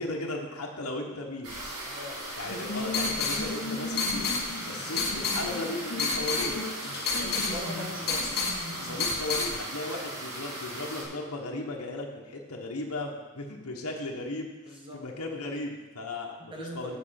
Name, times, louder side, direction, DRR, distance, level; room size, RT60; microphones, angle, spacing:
voice 1, 0.0-1.6 2.3-4.3 4.7-6.6 8.8-17.0, left 2 dB, 70° left, 0 dB, 1.3 m, -36 dB
sound 1, 1.4-11.0, right 1 dB, 70° right, 2.5 m, -38 dB
voice 2, 1.8-2.2 7.2-8.4 14.7-15.0 16.4-17.0, equal, 25° right, 0 dB, 1.4 m, -41 dB
sound 2, 2.4-9.5, left 3 dB, 50° left, 1.2 m, -31 dB
7.6 x 7.4 x 5.9 m, 1.2 s
head